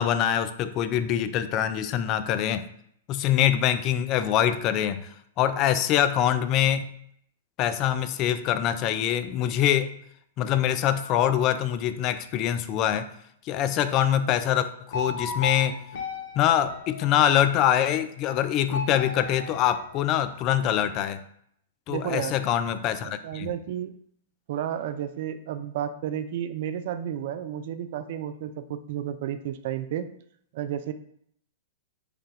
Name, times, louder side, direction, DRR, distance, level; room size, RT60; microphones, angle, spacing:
voice 1, 0.0-2.6 3.1-6.9 7.6-9.9 10.4-13.1 13.4-15.8 16.4-21.2 21.9-23.5, left 10 dB, 40° left, 11 dB, 0.3 m, -24 dB
sound 1, 14.9-17.6 18.7-20.5, left 4 dB, 65° left, 0.8 m, -36 dB
voice 2, 21.9-22.4 23.0-23.9 24.5-30.1 30.5-30.9, right 10 dB, 55° right, 10 dB, 0.3 m, -32 dB
4.6 x 2.3 x 3.3 m, 0.67 s
hypercardioid pair, 110°, 0 cm